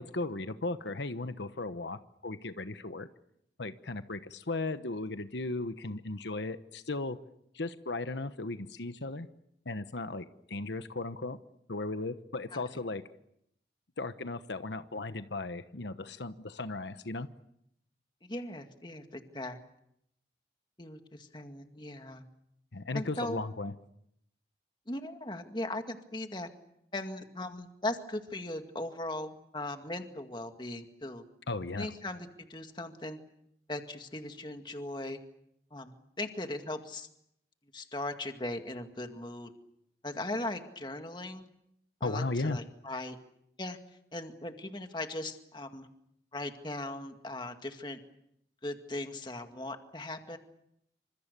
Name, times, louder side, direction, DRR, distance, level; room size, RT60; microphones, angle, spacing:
voice 1, 0.0-3.1 3.6-7.2 7.5-9.3 9.6-11.4 11.7-13.0 14.0-17.3 22.7-23.7 31.5-31.9 42.0-42.6, left 2 dB, 85° left, 11 dB, 1.2 m, -36 dB
voice 2, 18.3-19.6 20.8-22.2 22.9-23.4 24.9-26.5 26.9-31.2 31.8-33.2 33.7-35.2 35.7-37.1 37.7-39.5 40.0-41.5 42.0-43.2 43.6-43.8 44.1-45.9 46.3-48.0 48.6-50.4, left 1 dB, 25° left, 6 dB, 2.1 m, -38 dB
28.5 x 26.0 x 6.9 m, 0.76 s
head